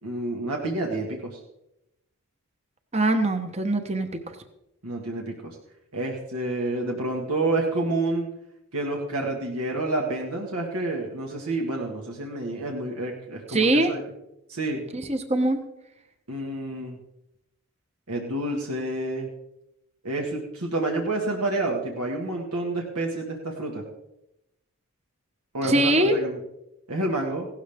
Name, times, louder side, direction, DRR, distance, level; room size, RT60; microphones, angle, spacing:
voice 1, 0.0-1.4 4.8-5.6 5.9-8.3 8.7-14.0 14.5-14.8 16.3-17.0 18.1-19.3 20.0-23.8 25.5-26.4 26.9-27.5, right 2 dB, 80° right, 0 dB, 1.8 m, -29 dB
voice 2, 2.9-4.4 13.5-13.9 14.9-15.6 25.6-26.2, right 1 dB, 30° right, 7 dB, 1.0 m, -22 dB
16.5 x 12.5 x 3.6 m, 0.87 s
head